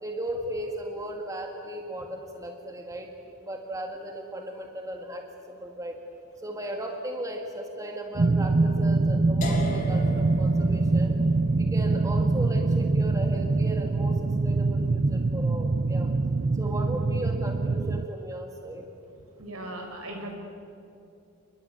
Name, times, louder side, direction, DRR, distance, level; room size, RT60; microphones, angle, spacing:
voice 1, 0.0-3.1 3.4-6.0 6.4-11.1 11.6-16.1 16.5-18.9, right 1 dB, 15° right, 2 dB, 1.9 m, -36 dB
sound 1, 8.2-18.1, right 3 dB, 40° right, 0.5 m, -24 dB
sound 2, 9.4-15.3, left 1 dB, 35° left, 3.0 m, -39 dB
voice 2, 19.4-20.4, right 1 dB, 75° right, 2 dB, 5.5 m, -37 dB
29.0 x 21.0 x 8.6 m, 2.8 s
head